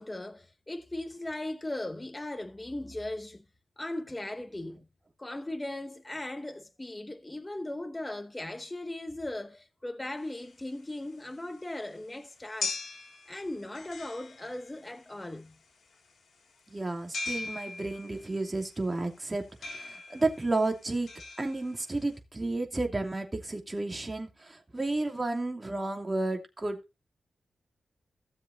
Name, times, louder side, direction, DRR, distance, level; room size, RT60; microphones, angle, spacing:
voice 1, 0.0-3.4 3.8-4.9 5.2-12.8 13.3-15.6, left 1 dB, 20° left, 0.9 m, -38 dB
sound 1, 10.2-22.2, left 4 dB, 75° left, 3.4 m, -41 dB
voice 2, 16.7-21.1 21.4-26.8, right 2 dB, 25° right, 2.8 m, -32 dB
16.5 x 7.2 x 2.8 m
cardioid pair, 75°, 0 cm